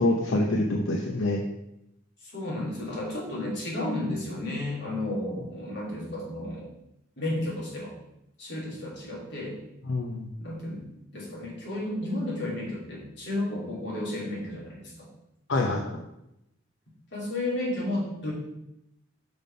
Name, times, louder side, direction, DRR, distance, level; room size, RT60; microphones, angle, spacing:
voice 1, 0.0-1.4 9.9-10.3 15.5-15.9, left 2 dB, 80° left, 1 dB, 0.8 m, -25 dB
voice 2, 2.2-6.7 7.2-7.9 8.4-9.6 10.4-10.9 11.1-15.1 15.6-15.9 17.1-18.3, left 1 dB, 60° left, -4 dB, 3.0 m, -32 dB
6.0 x 5.4 x 5.3 m, 0.84 s
head